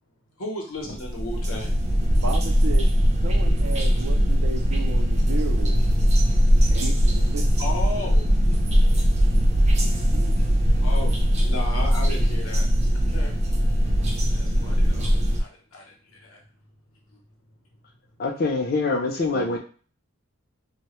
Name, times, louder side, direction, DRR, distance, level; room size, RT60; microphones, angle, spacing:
voice 1, 0.4-2.3 3.3-4.0 4.5-4.6 6.9-8.6 9.1-9.2 9.8-9.9 10.5-12.7 13.1-13.3 14.3-16.4 17.1-17.2, left 2 dB, 75° left, 0 dB, 0.7 m, -36 dB
sound 1, 0.9-15.4, equal, 30° right, 0.3 m, -20 dB
voice 2, 2.1-2.9 3.2-5.9 6.7-7.4 10.0-10.3 19.3-19.6, right 3 dB, 85° right, 4 dB, 0.5 m, -34 dB
voice 3, 18.2-19.6, left 3 dB, 45° left, 3 dB, 0.4 m, -24 dB
2.1 x 2.0 x 2.9 m, 0.39 s
head